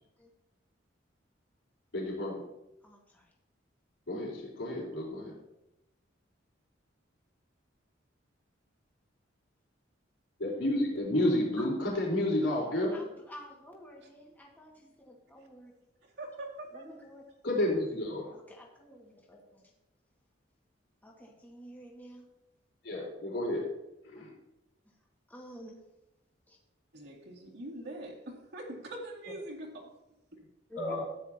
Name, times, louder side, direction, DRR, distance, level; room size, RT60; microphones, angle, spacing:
voice 1, 1.9-2.4 4.1-5.3 10.4-13.0 17.4-18.3 22.8-23.7 24.0-24.3 30.8-31.0, left 1 dB, 75° left, -3 dB, 4.2 m, -31 dB
voice 2, 2.8-3.3 11.6-11.7 12.9-15.7 16.7-17.2 17.6-17.7 18.3-19.7 21.0-22.3 24.1-24.2 24.8-25.0 25.3-25.8 26.5-26.6 30.7-31.0, equal, 10° left, -2 dB, 1.8 m, -50 dB
voice 3, 16.2-16.8 26.9-29.7, right 1 dB, 65° right, -6 dB, 2.3 m, -43 dB
14.0 x 9.7 x 2.9 m, 0.89 s
head